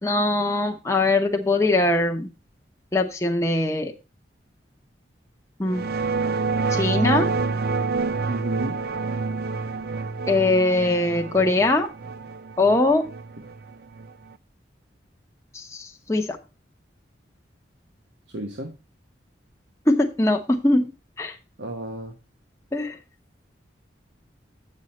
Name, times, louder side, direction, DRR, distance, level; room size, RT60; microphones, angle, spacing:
voice 1, 0.0-2.3 2.9-3.9 5.6-5.9 6.7-7.3 10.3-11.9 12.6-13.0 15.5-16.4 19.9-20.9 21.2-21.4 22.7-23.0, left 2 dB, 15° left, 3 dB, 0.9 m, -21 dB
sound 1, 5.7-14.3, right 4 dB, 55° right, 0.5 m, -28 dB
voice 2, 8.3-8.8 18.3-18.7 21.6-22.1, right 1 dB, 75° right, 4 dB, 1.1 m, -32 dB
8.8 x 6.5 x 4.2 m, 0.29 s
head